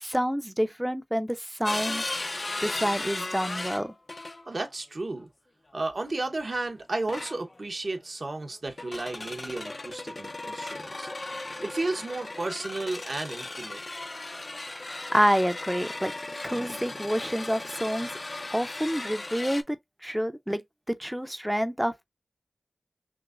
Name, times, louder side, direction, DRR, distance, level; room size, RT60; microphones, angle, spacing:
voice 1, 0.0-2.0 2.6-3.9 15.1-16.1 16.4-18.1 18.5-19.8 20.0-20.6 20.9-21.9, equal, 5° right, 0.6 m, -28 dB
sound 1, 1.6-4.6 5.8-6.1 7.1-7.7 8.7-19.6, left 2 dB, 40° left, 0.5 m, -36 dB
voice 2, 4.5-5.3 5.7-13.8, right 2 dB, 55° right, 1.0 m, -33 dB
6.0 x 2.1 x 2.5 m
wide cardioid pair, 70°, 0 cm